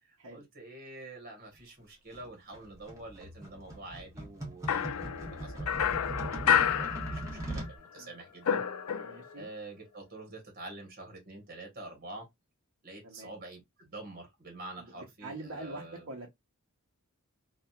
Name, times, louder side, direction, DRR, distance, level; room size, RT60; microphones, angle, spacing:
voice 1, 0.0-8.6 8.9-12.3 12.8-16.1, right 2 dB, 45° right, 1.1 m, -47 dB
sound 1, 2.1-7.7, right 1 dB, 15° right, 1.1 m, -40 dB
sound 2, 4.7-7.7 8.0-9.4, left 8 dB, 75° left, 0.4 m, -30 dB
voice 2, 9.0-9.5 13.0-13.3 14.8-16.3, right 2 dB, 90° right, 0.8 m, -44 dB
2.8 x 2.3 x 2.2 m
head